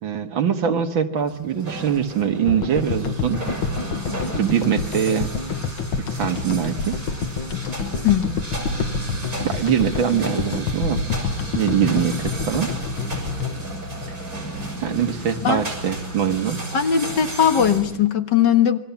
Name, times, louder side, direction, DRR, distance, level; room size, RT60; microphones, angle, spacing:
voice 1, 0.0-3.4 4.4-5.3 6.1-7.0 9.4-11.1 11.5-12.7 14.8-16.6, right 8 dB, 80° right, 7 dB, 2.5 m, -23 dB
sound 1, 1.2-18.0, right 1 dB, 45° right, 7.1 m, -33 dB
sound 2, 2.5-14.8, left 5 dB, 85° left, 2.3 m, -28 dB
voice 2, 8.0-8.4 15.4-15.6 16.7-18.8, left 9 dB, 65° left, 8 dB, 2.1 m, -19 dB
27.5 x 22.5 x 7.2 m, 0.78 s
omnidirectional pair, 2.1 m